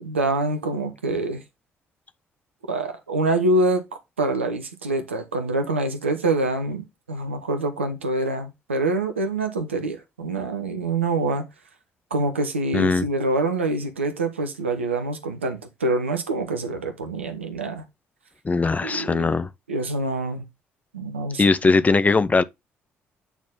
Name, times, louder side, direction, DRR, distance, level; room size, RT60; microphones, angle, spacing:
voice 1, 0.0-1.4 2.7-3.8 4.2-11.5 12.1-17.8 18.8-19.3 19.7-20.4 20.9-21.4, right 2 dB, 80° right, 1.0 m, -25 dB
voice 2, 12.7-13.1 18.4-19.5 21.4-22.4, left 4 dB, 25° left, 0.6 m, -20 dB
9.1 x 4.2 x 3.6 m
figure-of-eight pair, 45°, 6 cm